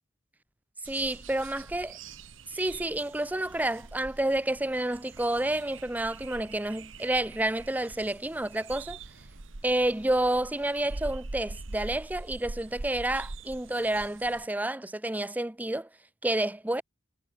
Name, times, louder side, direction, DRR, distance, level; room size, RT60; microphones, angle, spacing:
voice 1, 0.8-1.9 2.5-9.0 9.6-15.9 16.2-16.8, right 1 dB, 10° right, 0.5 m, -29 dB
sound 1, 0.8-14.5, right 3 dB, 90° right, 1.4 m, -44 dB
head